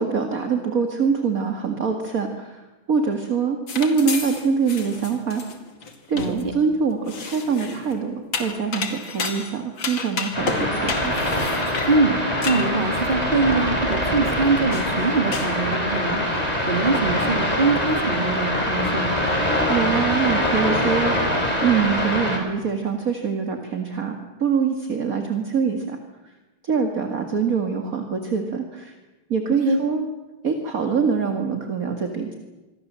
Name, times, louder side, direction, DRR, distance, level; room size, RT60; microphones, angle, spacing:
voice 1, 0.0-5.4 6.1-11.1 19.7-24.1 24.4-26.0 26.6-28.9 29.3-30.1 30.4-32.3, right 6 dB, 40° right, 5 dB, 2.3 m, -24 dB
sound 1, 3.7-6.4 7.1-8.0 8.3-13.0 13.5-13.6 14.2-14.3 14.7-15.0 15.3-15.6, left 5 dB, 60° left, 3.0 m, -31 dB
sound 2, 10.3-22.4, left 1 dB, 15° left, 5.4 m, -23 dB
voice 2, 12.4-16.2 16.7-19.2 29.6-29.8, right 3 dB, 25° right, 4 dB, 3.3 m, -23 dB
26.5 x 23.0 x 7.6 m, 1.1 s
omnidirectional pair, 2.4 m